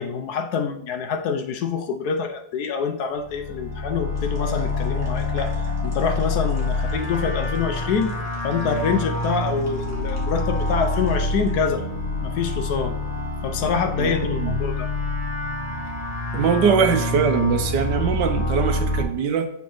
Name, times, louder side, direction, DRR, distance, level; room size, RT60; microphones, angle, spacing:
voice 1, 0.0-5.5 5.8-8.2 8.4-11.8 12.2-13.0 13.4-14.9, left 5 dB, 70° left, 6 dB, 1.1 m, -26 dB
sound 1, 3.1-19.0, left 2 dB, 35° left, 0.9 m, -27 dB
sound 2, 4.1-11.8, right 1 dB, 10° right, 1.6 m, -43 dB
voice 2, 16.3-19.5, right 6 dB, 75° right, 7 dB, 1.3 m, -21 dB
8.3 x 4.1 x 3.1 m, 0.75 s
omnidirectional pair, 1.9 m